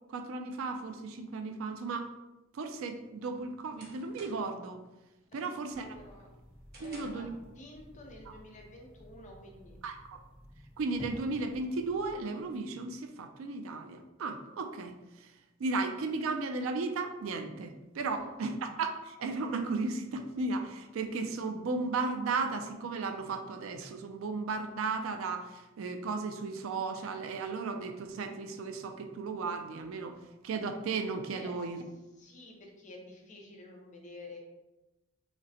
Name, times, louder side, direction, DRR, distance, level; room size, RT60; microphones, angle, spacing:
voice 1, 0.1-2.1 2.5-4.8 5.3-5.9 6.8-7.3 9.8-10.0 10.8-15.3 15.6-30.2 30.4-31.8, right 3 dB, 70° right, 6 dB, 0.4 m, -35 dB
sound 1, 3.0-4.7 5.1-5.4 5.8-7.4, right 2 dB, 50° right, 1.0 m, -54 dB
voice 2, 5.3-6.3 6.8-9.8 18.0-18.3 31.3-31.6 32.2-34.4, left 2 dB, 35° left, 0 dB, 0.7 m, -50 dB
sound 2, 5.7-12.2, equal, 5° right, 0.7 m, -52 dB
4.9 x 2.1 x 2.8 m, 1.0 s
head